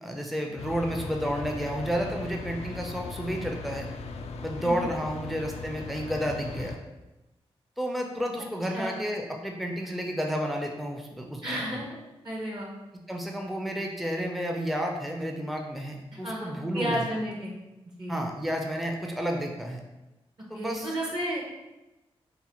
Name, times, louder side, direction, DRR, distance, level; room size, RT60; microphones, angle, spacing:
voice 1, 0.0-3.9 4.4-6.8 7.8-11.8 13.1-17.1 18.1-19.8 20.5-20.9, equal, ahead, 2 dB, 0.5 m, -31 dB
sound 1, 0.6-6.8, left 4 dB, 80° left, 0.4 m, -38 dB
voice 2, 4.6-4.9 8.7-8.9 11.4-11.9 12.2-12.7 16.1-17.5 18.0-18.2 20.5-21.4, equal, 45° right, -2 dB, 0.9 m, -32 dB
3.9 x 2.1 x 4.3 m, 1.0 s
cardioid pair, 60°, 11 cm